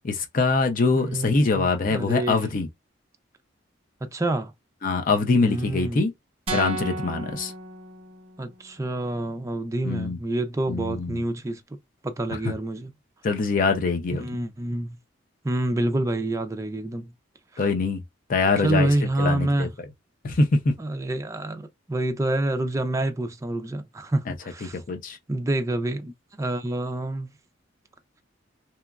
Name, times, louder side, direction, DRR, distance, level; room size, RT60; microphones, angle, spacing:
voice 1, 0.0-2.7 4.8-6.1 6.5-7.5 9.8-10.2 10.7-11.2 13.2-14.3 17.6-18.0 18.3-18.9 19.2-19.7 20.2-20.7 24.6-25.2, left 3 dB, 45° left, 0.5 m, -23 dB
voice 2, 0.9-2.5 4.0-4.5 5.4-6.1 8.4-11.8 12.0-12.9 14.1-15.0 15.4-17.1 17.5-17.7 18.6-19.7 20.8-24.8 25.3-27.3, right 1 dB, 15° right, 0.4 m, -27 dB
sound 1, 6.5-8.6, right 2 dB, 30° right, 0.8 m, -33 dB
2.9 x 2.3 x 2.3 m
head